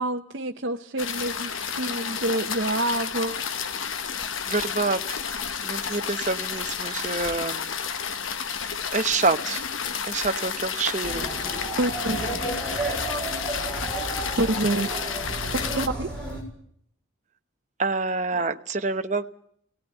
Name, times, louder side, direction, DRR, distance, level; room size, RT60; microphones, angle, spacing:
voice 1, 0.0-3.4 11.8-12.3 14.3-14.9 15.5-16.1, right 2 dB, 60° right, 1 dB, 0.9 m, -27 dB
sound 1, 1.0-15.9, left 7 dB, 80° left, 1.1 m, -31 dB
voice 2, 4.5-5.2 5.6-7.7 8.4-8.6 8.9-9.6 10.0-11.3 17.8-19.3, right 3 dB, 35° right, 8 dB, 1.0 m, -27 dB
sound 2, 11.0-16.4, right 2 dB, 5° left, 6.9 m, -32 dB
18.5 x 18.5 x 9.1 m, 0.66 s
head